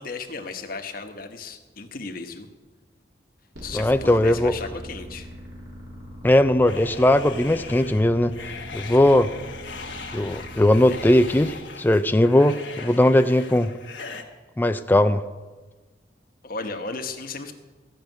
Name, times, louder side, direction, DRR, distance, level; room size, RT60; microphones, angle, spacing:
voice 1, 0.0-2.5 3.6-5.3 8.8-9.0 10.9-11.0 16.4-17.5, left 4 dB, 50° left, 5 dB, 1.2 m, -35 dB
sound 1, 3.5-11.6, equal, 70° right, 3.7 m, -41 dB
voice 2, 3.7-4.5 6.2-8.3 8.7-9.3 10.1-13.7 14.6-15.2, left 1 dB, 10° left, 9 dB, 0.4 m, -19 dB
sound 2, 6.7-14.2, left 4 dB, 75° left, 1.4 m, -40 dB
14.5 x 6.6 x 9.2 m, 1.3 s
head